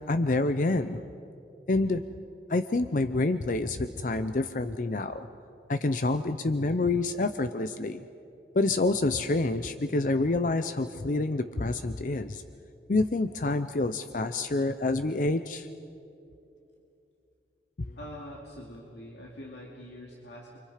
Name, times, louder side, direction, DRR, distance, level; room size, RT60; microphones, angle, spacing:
voice 1, 0.1-1.0 1.7-2.0 2.5-5.3 5.7-8.0 8.5-12.4 12.9-15.7 17.9-18.0, left 2 dB, 50° left, 10 dB, 0.6 m, -27 dB
voice 2, 18.0-20.6, equal, 85° left, -3 dB, 2.5 m, -44 dB
29.5 x 25.5 x 5.0 m, 2.7 s
head